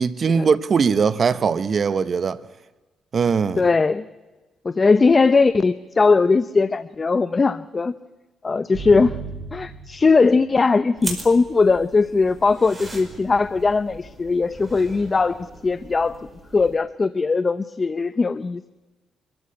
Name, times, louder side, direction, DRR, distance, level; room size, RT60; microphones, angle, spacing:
voice 1, 0.0-2.4 3.1-3.6, right 6 dB, 45° right, 0.9 m, -20 dB
voice 2, 3.6-4.0 4.6-7.9 8.4-9.1 9.5-16.3 16.5-18.7, left 4 dB, 30° left, 0.7 m, -19 dB
sound 1, 8.7-10.5 12.8-13.7, right 6 dB, 80° right, 4.4 m, -36 dB
sound 2, 11.0-16.7, right 3 dB, 25° right, 4.9 m, -39 dB
25.0 x 14.0 x 9.8 m
cardioid pair, 90°, 0 cm